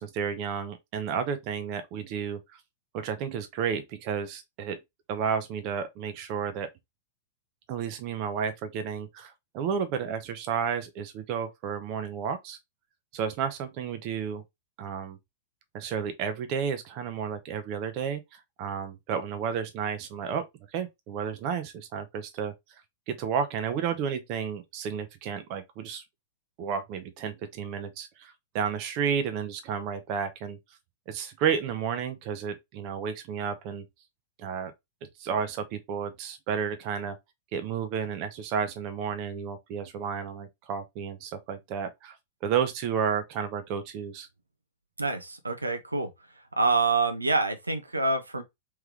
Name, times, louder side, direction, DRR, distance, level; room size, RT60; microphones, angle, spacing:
voice 1, 0.0-2.6 2.9-4.8 5.1-6.7 7.7-12.6 13.1-14.4 14.8-15.2 15.7-18.2 18.6-20.4 20.7-22.5 23.1-26.0 26.6-30.6 31.1-33.9 34.4-34.7 35.0-37.2 37.5-42.2 42.4-44.3, right 7 dB, 40° right, 0.7 m, -32 dB
voice 2, 45.0-46.1 46.6-48.4, right 3 dB, 80° right, 0.7 m, -26 dB
3.4 x 3.2 x 3.3 m
figure-of-eight pair, 100°, 0 cm